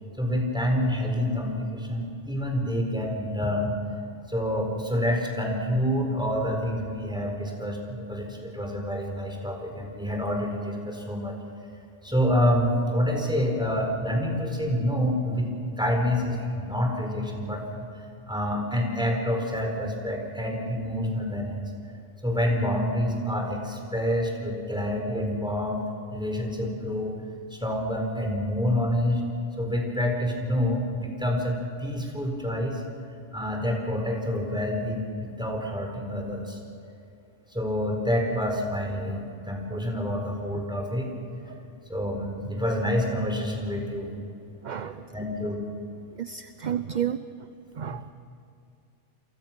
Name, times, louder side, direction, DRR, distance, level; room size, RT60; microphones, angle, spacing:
voice 1, 0.2-3.7 4.3-11.4 12.0-15.5 15.8-17.9 18.3-21.7 22.2-25.8 26.1-27.2 27.5-29.2 29.6-32.8 33.3-36.6 37.5-41.1 41.9-44.1 44.8-45.6 47.9-48.0, equal, 5° right, 1 dB, 4.5 m, -27 dB
voice 2, 44.6-45.0 46.2-47.2 47.8-48.1, right 9 dB, 45° right, 11 dB, 0.7 m, -31 dB
30.0 x 23.5 x 6.1 m, 2.6 s
omnidirectional pair, 1.3 m